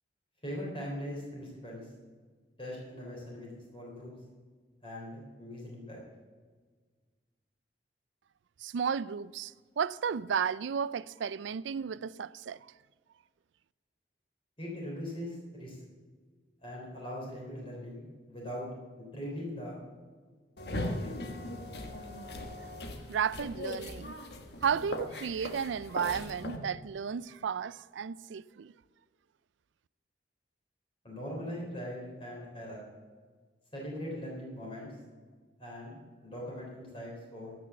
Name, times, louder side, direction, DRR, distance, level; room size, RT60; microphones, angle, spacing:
voice 1, 0.4-1.9 2.6-4.1 4.8-6.0 14.6-15.8 16.6-18.7 19.0-19.8 20.7-21.2 31.0-32.9 33.7-34.9 35.6-37.6, equal, 30° left, 3.6 m, -41 dB
voice 2, 8.6-12.7 23.1-24.2 24.6-28.7, right 7 dB, 85° right, 0.4 m, -33 dB
sound 1, 20.6-26.6, left 1 dB, 60° left, 1.3 m, -39 dB
15.5 x 6.1 x 6.9 m
head